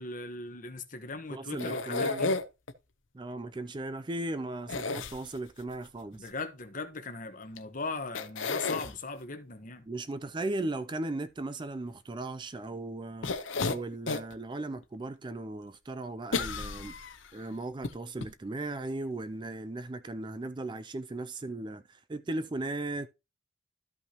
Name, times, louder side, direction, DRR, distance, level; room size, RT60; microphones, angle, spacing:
voice 1, 0.0-2.3 6.1-9.8, left 3 dB, 40° left, 1.2 m, -39 dB
voice 2, 1.3-2.4 3.1-6.3 9.9-13.3 13.6-16.9 17.3-23.1, right 2 dB, 25° right, 0.4 m, -37 dB
sound 1, 1.6-2.7 4.7-5.6 7.6-7.7 8.2-8.9 13.2-14.3 14.8-14.9 16.3-17.3 17.8-17.9 18.2-18.3, left 3 dB, 70° left, 0.8 m, -32 dB
13.0 x 5.5 x 2.9 m
head